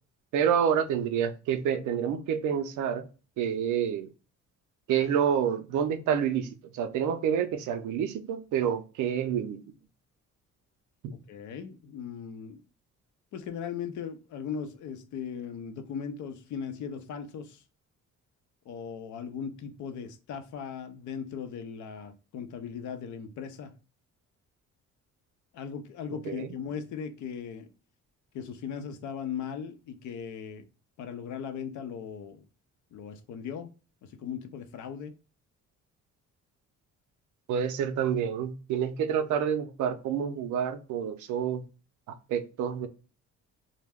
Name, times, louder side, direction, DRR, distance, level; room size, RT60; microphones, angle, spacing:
voice 1, 0.3-3.1 3.4-4.1 4.9-9.6 11.0-11.1 26.2-26.6 37.5-41.6 42.1-42.9, right 8 dB, 80° right, 0.5 m, -28 dB
voice 2, 11.3-12.6 13.3-17.6 18.7-23.7 25.5-27.7 28.3-30.6 31.0-32.4 32.9-33.7 34.0-35.1, left 7 dB, 75° left, 0.6 m, -38 dB
2.3 x 2.1 x 3.3 m
cardioid pair, 90°, 30 cm